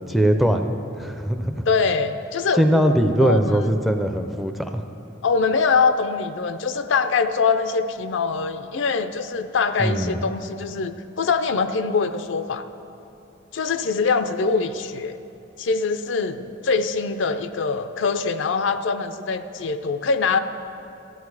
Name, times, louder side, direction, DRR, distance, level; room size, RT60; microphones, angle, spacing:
voice 1, 0.1-1.6 2.6-4.8 9.8-10.2, equal, ahead, 6 dB, 0.4 m, -21 dB
voice 2, 1.7-3.6 5.2-12.6 13.5-15.2 15.6-20.4, left 4 dB, 70° left, 10 dB, 0.5 m, -23 dB
13.5 x 8.8 x 4.8 m, 2.7 s
head